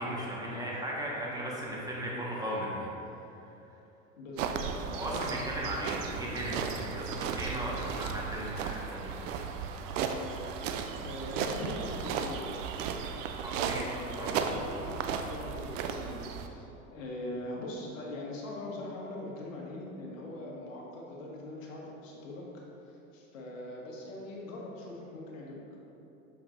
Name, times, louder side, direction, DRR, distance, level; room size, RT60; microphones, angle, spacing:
voice 1, 0.0-2.9 3.4-3.5 4.9-9.4 13.4-14.3, equal, 10° right, -5 dB, 1.4 m, -36 dB
voice 2, 4.2-5.2 5.6-5.7 11.0-12.6 13.6-16.6 16.9-25.8, left 1 dB, 75° left, -2 dB, 1.4 m, -42 dB
sound 1, 4.4-16.5, right 6 dB, 70° right, 0.6 m, -35 dB
7.1 x 5.6 x 2.6 m, 2.9 s
hypercardioid pair, 90°, 40 cm